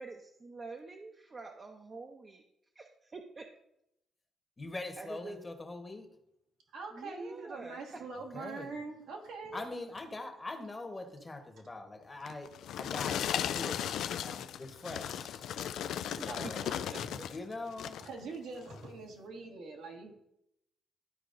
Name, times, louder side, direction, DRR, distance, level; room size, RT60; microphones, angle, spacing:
voice 1, 0.0-2.4 2.8-2.9 3.1-3.5 5.0-5.4 6.9-8.0 16.2-16.5 16.9-17.0, right 3 dB, 30° right, 2 dB, 0.7 m, -46 dB
voice 2, 4.6-6.1 8.1-8.8 9.5-15.5 16.3-16.7 17.3-18.0, left 2 dB, 25° left, 5 dB, 1.1 m, -43 dB
voice 3, 6.7-9.7 15.5-17.3 18.0-20.1, right 3 dB, 80° right, 0 dB, 1.5 m, -44 dB
sound 1, 12.3-17.4 17.7-18.1 18.7-18.9, left 10 dB, 75° left, 0.3 m, -36 dB
12.0 x 4.5 x 2.6 m, 0.80 s
cardioid pair, 90°, 0 cm